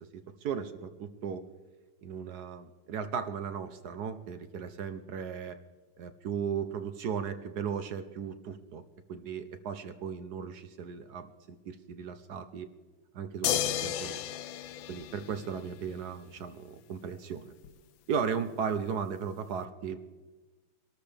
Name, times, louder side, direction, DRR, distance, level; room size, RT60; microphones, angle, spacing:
voice 1, 0.1-1.5 2.0-5.6 6.0-8.8 9.1-12.7 13.1-14.2 14.9-17.5 18.1-20.0, right 7 dB, 65° right, 10 dB, 1.1 m, -36 dB
sound 1, 13.4-15.9 17.6-17.7, left 11 dB, 70° left, 1.3 m, -33 dB
24.0 x 13.0 x 3.4 m, 1.3 s
omnidirectional pair, 2.3 m